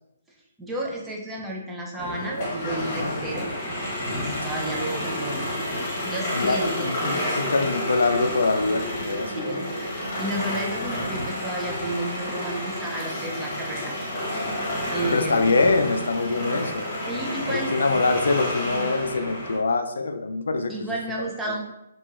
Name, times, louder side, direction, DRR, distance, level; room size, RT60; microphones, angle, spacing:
voice 1, 0.6-3.5 4.1-5.5 6.0-6.9 9.4-9.7 10.2-13.9 14.9-15.4 17.1-18.0 20.7-21.6, right 1 dB, 5° right, -2 dB, 0.4 m, -32 dB
sound 1, 2.0-19.6, left 1 dB, 30° left, 1.1 m, -30 dB
voice 2, 6.3-9.4 15.1-16.9 17.5-20.7 21.4-21.6, left 3 dB, 85° left, 7 dB, 0.3 m, -24 dB
2.9 x 2.7 x 2.4 m, 0.85 s
hypercardioid pair, 160°, 0 cm